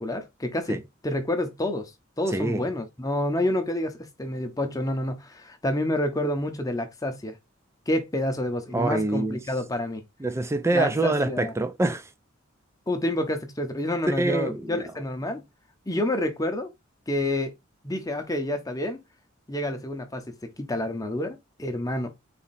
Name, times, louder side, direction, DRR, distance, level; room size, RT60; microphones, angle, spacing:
voice 1, 0.0-1.9 2.2-7.4 7.9-10.0 10.7-11.5 12.9-15.4 15.9-16.7 17.1-17.5 17.8-19.0 19.5-20.2 20.6-22.1, left 1 dB, 15° left, 0.7 m, -28 dB
voice 2, 2.3-2.6 8.7-9.4 10.2-12.1 14.1-14.8, right 2 dB, 15° right, 0.4 m, -25 dB
4.2 x 2.8 x 4.1 m
head